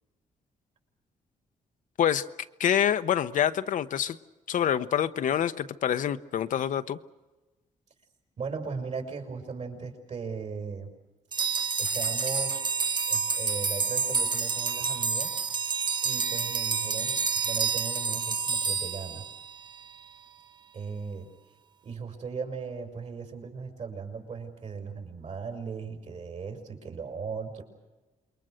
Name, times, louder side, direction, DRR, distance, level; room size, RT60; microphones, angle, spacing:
voice 1, 2.6-4.2 4.5-7.0, left 9 dB, 70° left, 10 dB, 0.9 m, -26 dB
voice 2, 8.4-10.9 11.8-12.6 13.1-15.4 16.0-19.2 20.7-21.3 21.8-27.6, right 5 dB, 55° right, 4 dB, 5.6 m, -37 dB
sound 1, 11.3-19.8, right 5 dB, 35° right, 0.8 m, -29 dB
27.5 x 22.5 x 6.4 m, 1.2 s
cardioid pair, 100°, 14 cm